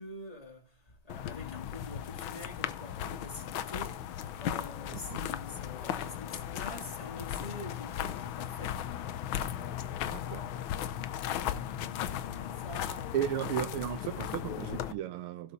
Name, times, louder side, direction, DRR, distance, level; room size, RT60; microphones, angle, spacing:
voice 1, 0.0-13.1, left 2 dB, 20° left, 2.0 m, -47 dB
sound 1, 1.1-14.9, left 10 dB, 75° left, 1.5 m, -36 dB
voice 2, 10.1-10.4 13.1-15.5, right 10 dB, 85° right, 1.6 m, -35 dB
16.5 x 5.8 x 4.1 m
omnidirectional pair, 2.4 m